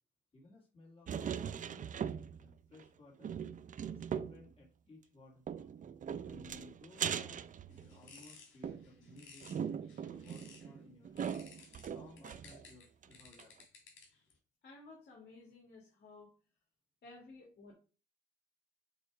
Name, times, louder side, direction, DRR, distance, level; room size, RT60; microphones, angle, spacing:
voice 1, 0.3-1.9 2.4-3.4 3.8-5.7 6.2-9.5 10.0-11.3 11.8-13.5, left 2 dB, 30° left, -3 dB, 2.3 m, -59 dB
sound 1, 1.1-2.5 2.8-2.9 3.2-4.5 5.5-8.2 8.6-12.7 13.0-13.1 13.4-13.5, right 8 dB, 40° right, 0.5 m, -40 dB
sound 2, 7.7-10.7 11.2-14.3, left 5 dB, 75° left, 2.4 m, -58 dB
voice 2, 14.6-16.3 17.0-17.7, left 3 dB, 55° left, -1 dB, 2.1 m, -55 dB
7.0 x 3.1 x 4.8 m, 0.35 s
cardioid pair, 90°, 20 cm